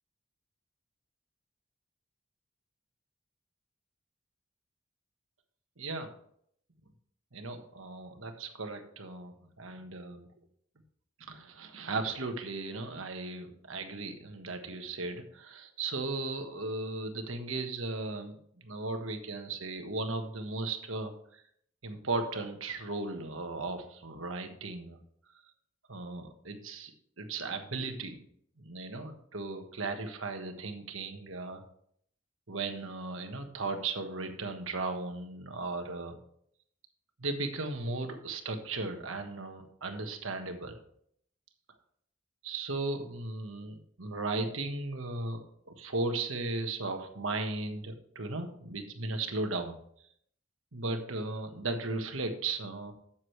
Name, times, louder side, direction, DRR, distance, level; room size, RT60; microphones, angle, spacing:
voice 1, 5.8-6.1 7.3-10.3 11.2-18.4 18.6-21.4 21.8-25.0 25.9-26.9 27.2-28.2 28.6-31.6 32.5-36.2 37.2-40.8 42.4-49.7 50.7-52.9, right 3 dB, 90° right, 6 dB, 1.4 m, -36 dB
12.5 x 7.3 x 3.2 m, 0.66 s
head